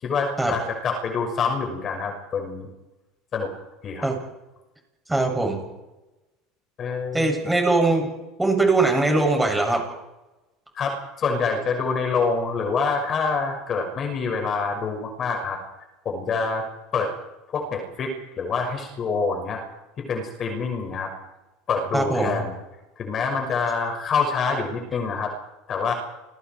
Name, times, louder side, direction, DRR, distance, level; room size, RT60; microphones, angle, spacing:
voice 1, 0.0-2.7 3.3-3.5 3.8-4.1 6.8-7.3 10.7-15.6 16.0-16.6 16.9-17.1 17.5-19.6 20.1-21.1 21.7-22.6 23.0-25.3 25.7-25.9, left 4 dB, 35° left, 3 dB, 6.3 m, -26 dB
voice 2, 5.1-5.6 7.1-8.1 8.4-9.8 21.9-22.4, right 2 dB, 5° right, 1 dB, 7.8 m, -21 dB
29.5 x 22.5 x 4.8 m, 1.0 s
supercardioid pair, 130°, 0 cm